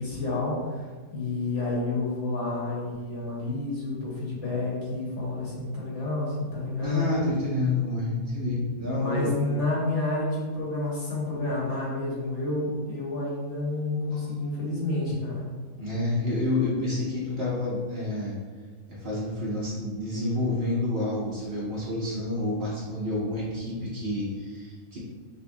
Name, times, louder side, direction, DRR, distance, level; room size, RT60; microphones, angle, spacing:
voice 1, 0.0-7.1 8.9-15.5, left 2 dB, 55° left, -6 dB, 1.2 m, -30 dB
voice 2, 6.8-9.3 14.1-14.3 15.8-18.4 18.9-25.0, left 2 dB, 50° right, -7 dB, 0.9 m, -29 dB
5.4 x 2.2 x 2.6 m, 1.5 s
omnidirectional pair, 1.6 m